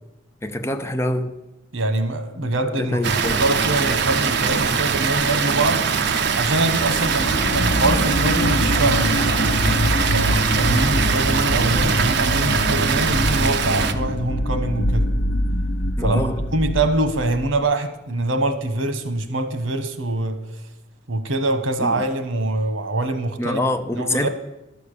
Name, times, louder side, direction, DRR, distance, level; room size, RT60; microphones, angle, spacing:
voice 1, 0.4-1.4 2.8-3.4 16.0-16.4 21.8-22.0 23.4-24.3, left 1 dB, 15° left, 0.6 m, -25 dB
voice 2, 1.7-3.0 3.4-5.8 6.3-9.1 10.1-15.0 16.0-20.4 21.1-23.6 23.9-24.3, right 2 dB, 90° right, 1.2 m, -24 dB
Water, 3.0-13.9, right 5 dB, 60° right, 0.7 m, -22 dB
sound 1, 7.0-17.5, left 1 dB, 65° left, 0.9 m, -24 dB
12.0 x 7.0 x 6.8 m
head